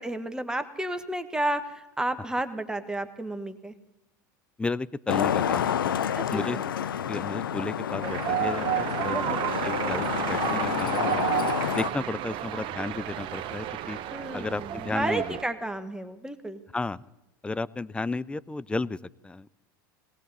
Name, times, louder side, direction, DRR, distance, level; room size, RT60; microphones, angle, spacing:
voice 1, 0.0-3.7 6.1-6.7 9.1-9.5 14.1-16.6, right 1 dB, 5° right, 10 dB, 1.3 m, -32 dB
voice 2, 4.6-6.0 6.3-6.6 7.1-9.4 9.6-11.3 11.7-14.0 14.3-15.4 16.7-17.0 17.4-19.5, left 3 dB, 10° left, 18 dB, 0.4 m, -33 dB
Traffic noise roadway noise, 5.1-11.9, left 9 dB, 85° left, 0.6 m, -29 dB
sound 1, 8.0-15.4, right 11 dB, 50° right, 1.0 m, -31 dB
18.5 x 18.0 x 4.0 m, 1.0 s
hypercardioid pair, 90°, 11 cm